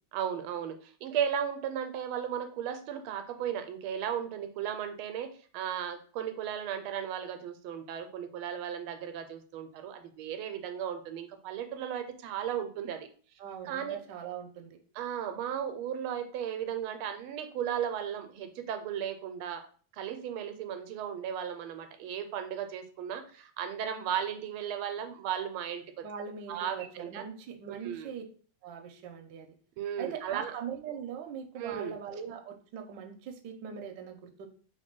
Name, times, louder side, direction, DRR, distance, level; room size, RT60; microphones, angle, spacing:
voice 1, 0.1-13.1 13.6-14.0 14.9-19.6 19.9-26.0 26.5-27.2 27.7-28.1 29.8-30.5 31.6-31.9, right 9 dB, 85° right, 8 dB, 1.4 m, -35 dB
voice 2, 13.4-14.8 26.0-28.2 28.6-29.6 30.0-34.5, right 7 dB, 70° right, 5 dB, 1.2 m, -41 dB
3.2 x 3.2 x 4.4 m, 0.43 s
omnidirectional pair, 2.3 m